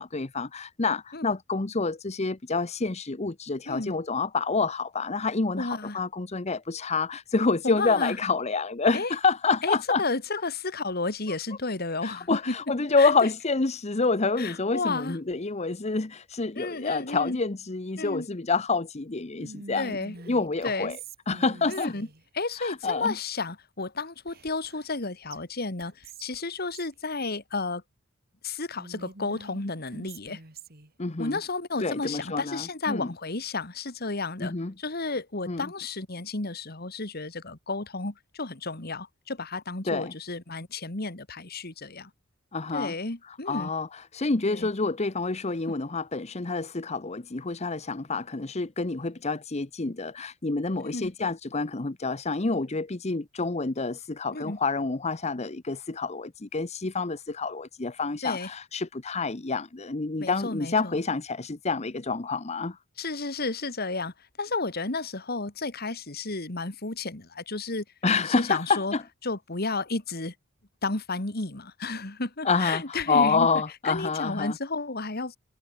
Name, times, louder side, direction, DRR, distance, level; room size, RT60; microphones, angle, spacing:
voice 1, 0.0-10.0 12.0-20.0 20.3-21.0 21.3-21.9 22.6-23.1 31.0-31.4 31.8-33.1 34.4-34.7 35.5-35.7 39.8-40.1 42.5-42.9 43.2-62.8 68.0-69.0 72.4-74.6, left 4 dB, 35° left, 0.9 m, -28 dB
voice 2, 5.6-6.0 7.6-8.2 8.9-9.1 9.6-12.5 13.0-13.1 14.4-15.2 16.5-17.4 18.0-18.3 19.8-20.2 20.6-21.0 21.7-22.1 22.3-27.8 28.4-30.4 31.2-42.1 42.7-43.7 44.4-44.7 50.8-51.1 54.3-54.6 58.2-58.5 60.2-61.0 63.0-67.8 68.3-68.9 69.2-70.3 70.8-73.5 73.8-75.4, left 3 dB, 50° left, 2.4 m, -32 dB
Whispering, 19.4-22.2 24.3-25.0 25.3-25.4 25.8-26.9 28.8-30.9, right 3 dB, 50° right, 3.2 m, -45 dB
head